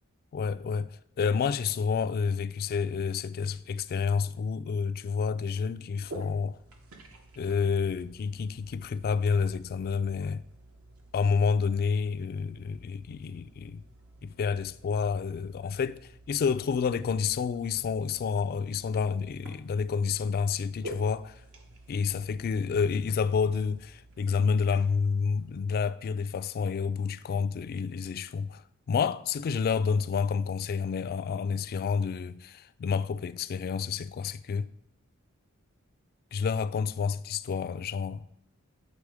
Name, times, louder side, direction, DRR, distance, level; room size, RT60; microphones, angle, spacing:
voice 1, 0.3-6.6 7.4-10.4 11.1-13.8 14.2-21.4 21.9-28.6 28.9-34.7 36.3-38.3, left 5 dB, 45° left, 0.3 m, -29 dB
sound 1, 6.0-25.6, right 1 dB, 75° right, 1.1 m, -50 dB
8.6 x 4.2 x 4.8 m
head